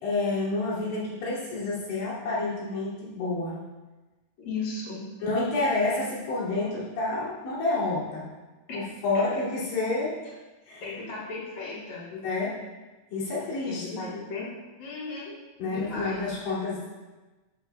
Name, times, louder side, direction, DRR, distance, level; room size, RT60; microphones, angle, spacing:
voice 1, 0.0-3.6 5.2-8.3 8.7-10.2 10.7-10.8 12.1-12.6 13.1-14.0 15.6-16.9, left 2 dB, 80° left, -8 dB, 5.0 m, -29 dB
voice 2, 4.4-5.1 8.7-8.8 9.1-9.2 10.8-12.1 13.7-14.5 14.8-16.2, left 3 dB, 40° left, -6 dB, 4.6 m, -36 dB
14.0 x 13.5 x 2.3 m, 1.2 s
omnidirectional pair, 5.3 m